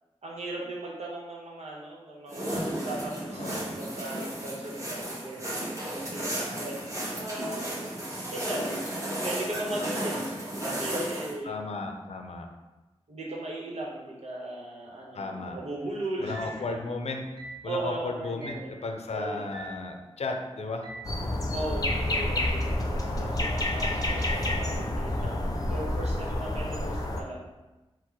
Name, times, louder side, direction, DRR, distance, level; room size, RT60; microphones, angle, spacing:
voice 1, 0.2-7.6 8.3-8.6 9.2-10.1 10.6-11.6 13.1-16.8 17.6-18.7 19.1-19.5 21.5-25.4 25.7-27.4, right 1 dB, 80° right, -3 dB, 1.0 m, -37 dB
sound 1, 2.3-11.3, right 1 dB, 25° right, 1.3 m, -33 dB
voice 2, 3.3-3.7 11.4-12.5 15.1-15.6 16.2-17.2 17.6-20.9 26.6-27.0, left 3 dB, 80° left, 4 dB, 0.5 m, -35 dB
sound 2, 16.3-16.7 17.4-17.7 18.4-18.7 19.5-19.9 20.8-21.2, right 2 dB, 45° right, 0.8 m, -43 dB
sound 3, 21.0-27.2, left 1 dB, 35° left, 0.6 m, -29 dB
4.5 x 2.1 x 4.5 m, 1.1 s
wide cardioid pair, 70°, 11 cm